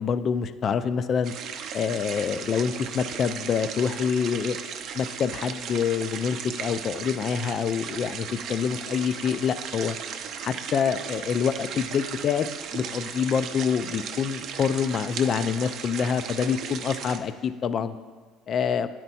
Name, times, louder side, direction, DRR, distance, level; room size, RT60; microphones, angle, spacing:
voice 1, 0.0-1.3 1.7-4.6 4.9-10.0 10.4-12.5 12.7-18.0 18.5-18.9, left 7 dB, 35° left, 13 dB, 0.3 m, -26 dB
sound 1, 1.2-17.2, right 7 dB, 50° right, 0.5 m, -36 dB
9.8 x 4.5 x 4.1 m, 1.4 s
cardioid pair, 150°, 0 cm